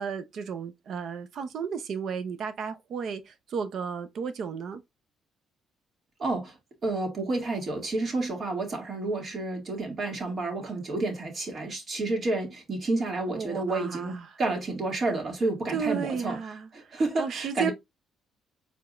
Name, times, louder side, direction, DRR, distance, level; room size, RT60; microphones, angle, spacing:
voice 1, 0.0-4.8 13.3-14.3 15.7-17.7, right 6 dB, 60° right, 0.8 m, -33 dB
voice 2, 6.2-6.6 6.8-16.4 16.7-17.7, right 2 dB, 45° right, 2.2 m, -30 dB
4.8 x 3.5 x 2.6 m
cardioid pair, 95°, 0 cm